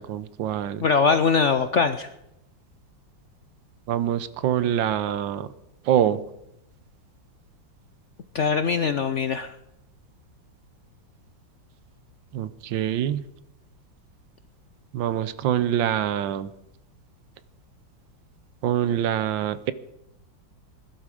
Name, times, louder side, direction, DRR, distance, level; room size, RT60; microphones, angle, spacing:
voice 1, 0.0-0.8 3.9-5.5 5.9-6.2 12.3-13.2 14.9-16.5 18.6-19.7, right 10 dB, 80° right, 15 dB, 1.4 m, -25 dB
voice 2, 0.8-2.1 8.3-9.5, left 5 dB, 65° left, 10 dB, 0.7 m, -22 dB
20.0 x 12.0 x 4.9 m, 0.85 s
omnidirectional pair, 2.1 m